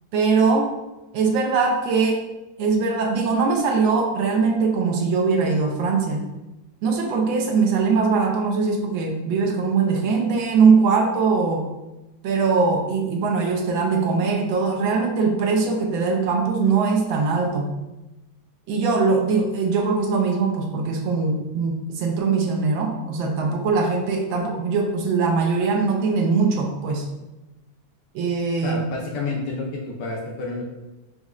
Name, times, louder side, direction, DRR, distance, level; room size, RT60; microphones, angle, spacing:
voice 1, 0.1-0.7 1.1-2.2 2.6-6.2 6.8-11.6 12.2-17.7 18.7-27.1 28.1-28.8, right 4 dB, 75° right, 1 dB, 1.4 m, -21 dB
voice 2, 28.6-30.6, left 3 dB, 70° left, -1 dB, 1.1 m, -29 dB
5.2 x 3.0 x 2.4 m, 1.0 s
omnidirectional pair, 2.2 m